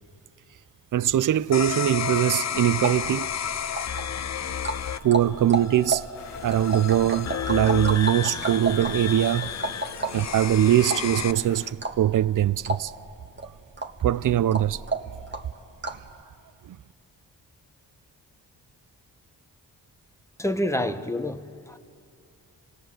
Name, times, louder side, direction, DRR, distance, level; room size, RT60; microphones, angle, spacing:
voice 1, 0.9-3.3 5.0-6.0 6.4-9.5 10.1-12.9 14.0-14.8 16.6-16.8, right 11 dB, 50° right, 0.5 m, -22 dB
sound 1, 1.5-11.3, left 8 dB, 40° left, 0.6 m, -32 dB
sound 2, 2.8-16.1, right 2 dB, 25° right, 1.6 m, -34 dB
sound 3, 6.1-11.7, left 5 dB, 80° left, 1.5 m, -44 dB
voice 2, 20.4-21.8, left 1 dB, 5° left, 1.1 m, -28 dB
27.0 x 18.0 x 7.7 m
cardioid pair, 55°, 41 cm